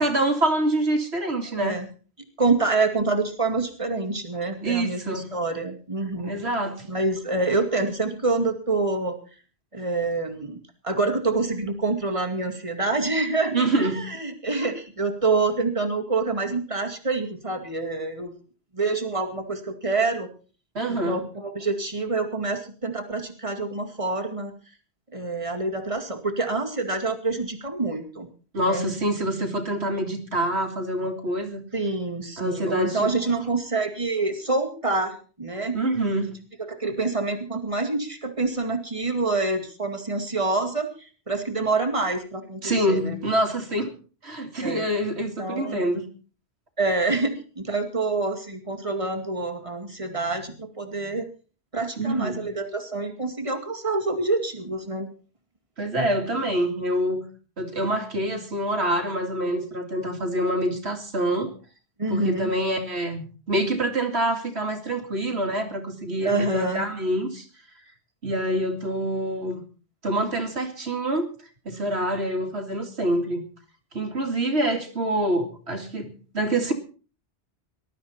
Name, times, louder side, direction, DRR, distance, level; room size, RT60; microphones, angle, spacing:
voice 1, 0.0-1.8 4.4-5.3 6.2-6.8 13.5-14.0 20.7-21.2 28.5-31.6 32.4-33.1 35.7-36.3 42.6-43.9 44.2-46.0 52.0-52.4 55.8-57.2 57.6-61.5 62.1-67.4 68.2-69.6 70.0-71.3 71.6-73.4 73.9-76.7, right 1 dB, 80° right, 4 dB, 2.8 m, -26 dB
voice 2, 2.4-6.3 6.9-9.2 9.7-18.3 18.7-20.3 20.9-24.5 25.1-28.3 28.6-28.9 31.7-35.8 36.6-43.2 44.6-44.9 45.4-45.8 46.8-51.3 51.7-55.1 62.0-62.5 66.2-66.9, right 3 dB, 30° right, 4 dB, 2.3 m, -26 dB
19.0 x 12.5 x 4.3 m, 0.38 s
omnidirectional pair, 1.1 m